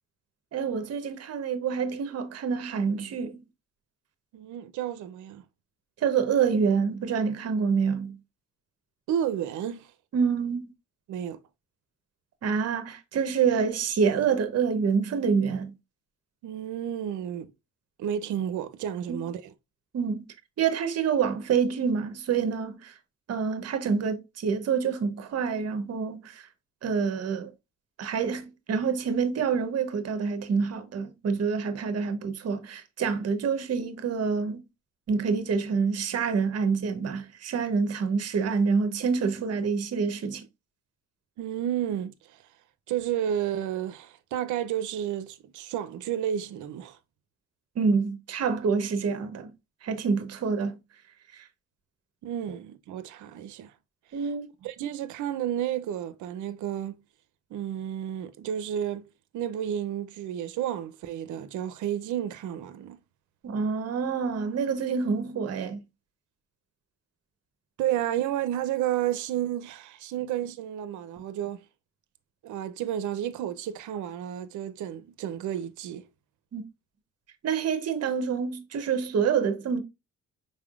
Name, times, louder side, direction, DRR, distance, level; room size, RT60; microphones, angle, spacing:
voice 1, 0.5-3.4 6.0-8.2 10.1-10.6 12.4-15.7 19.1-19.2 19.9-20.2 20.6-22.9 23.3-26.5 26.8-27.5 28.0-34.6 35.1-40.4 47.8-49.5 49.8-50.8 51.3-51.5 54.1-54.5 63.4-65.8 70.2-70.3 76.5-76.6 77.4-79.8, right 6 dB, 55° right, 0.9 m, -27 dB
voice 2, 4.3-5.4 9.1-9.9 11.1-11.4 16.4-17.5 18.0-19.4 41.4-42.4 42.9-47.0 52.2-53.7 54.1-54.2 54.6-57.0 57.5-63.0 67.8-71.6 72.4-76.1, right 10 dB, 80° right, 0.6 m, -31 dB
5.4 x 3.5 x 2.4 m
cardioid pair, 90°, 30 cm